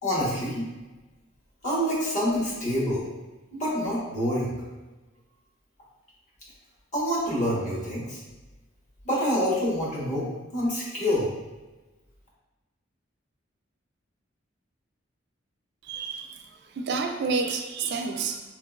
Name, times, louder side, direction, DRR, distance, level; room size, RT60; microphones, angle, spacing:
voice 1, 0.0-0.7 1.6-3.1 3.5-4.5 6.9-8.2 9.0-11.3, equal, 40° left, -6 dB, 1.1 m, -27 dB
voice 2, 15.8-16.4 16.8-18.4, right 4 dB, 60° right, 4 dB, 0.3 m, -29 dB
3.7 x 3.0 x 2.3 m, 1.2 s
head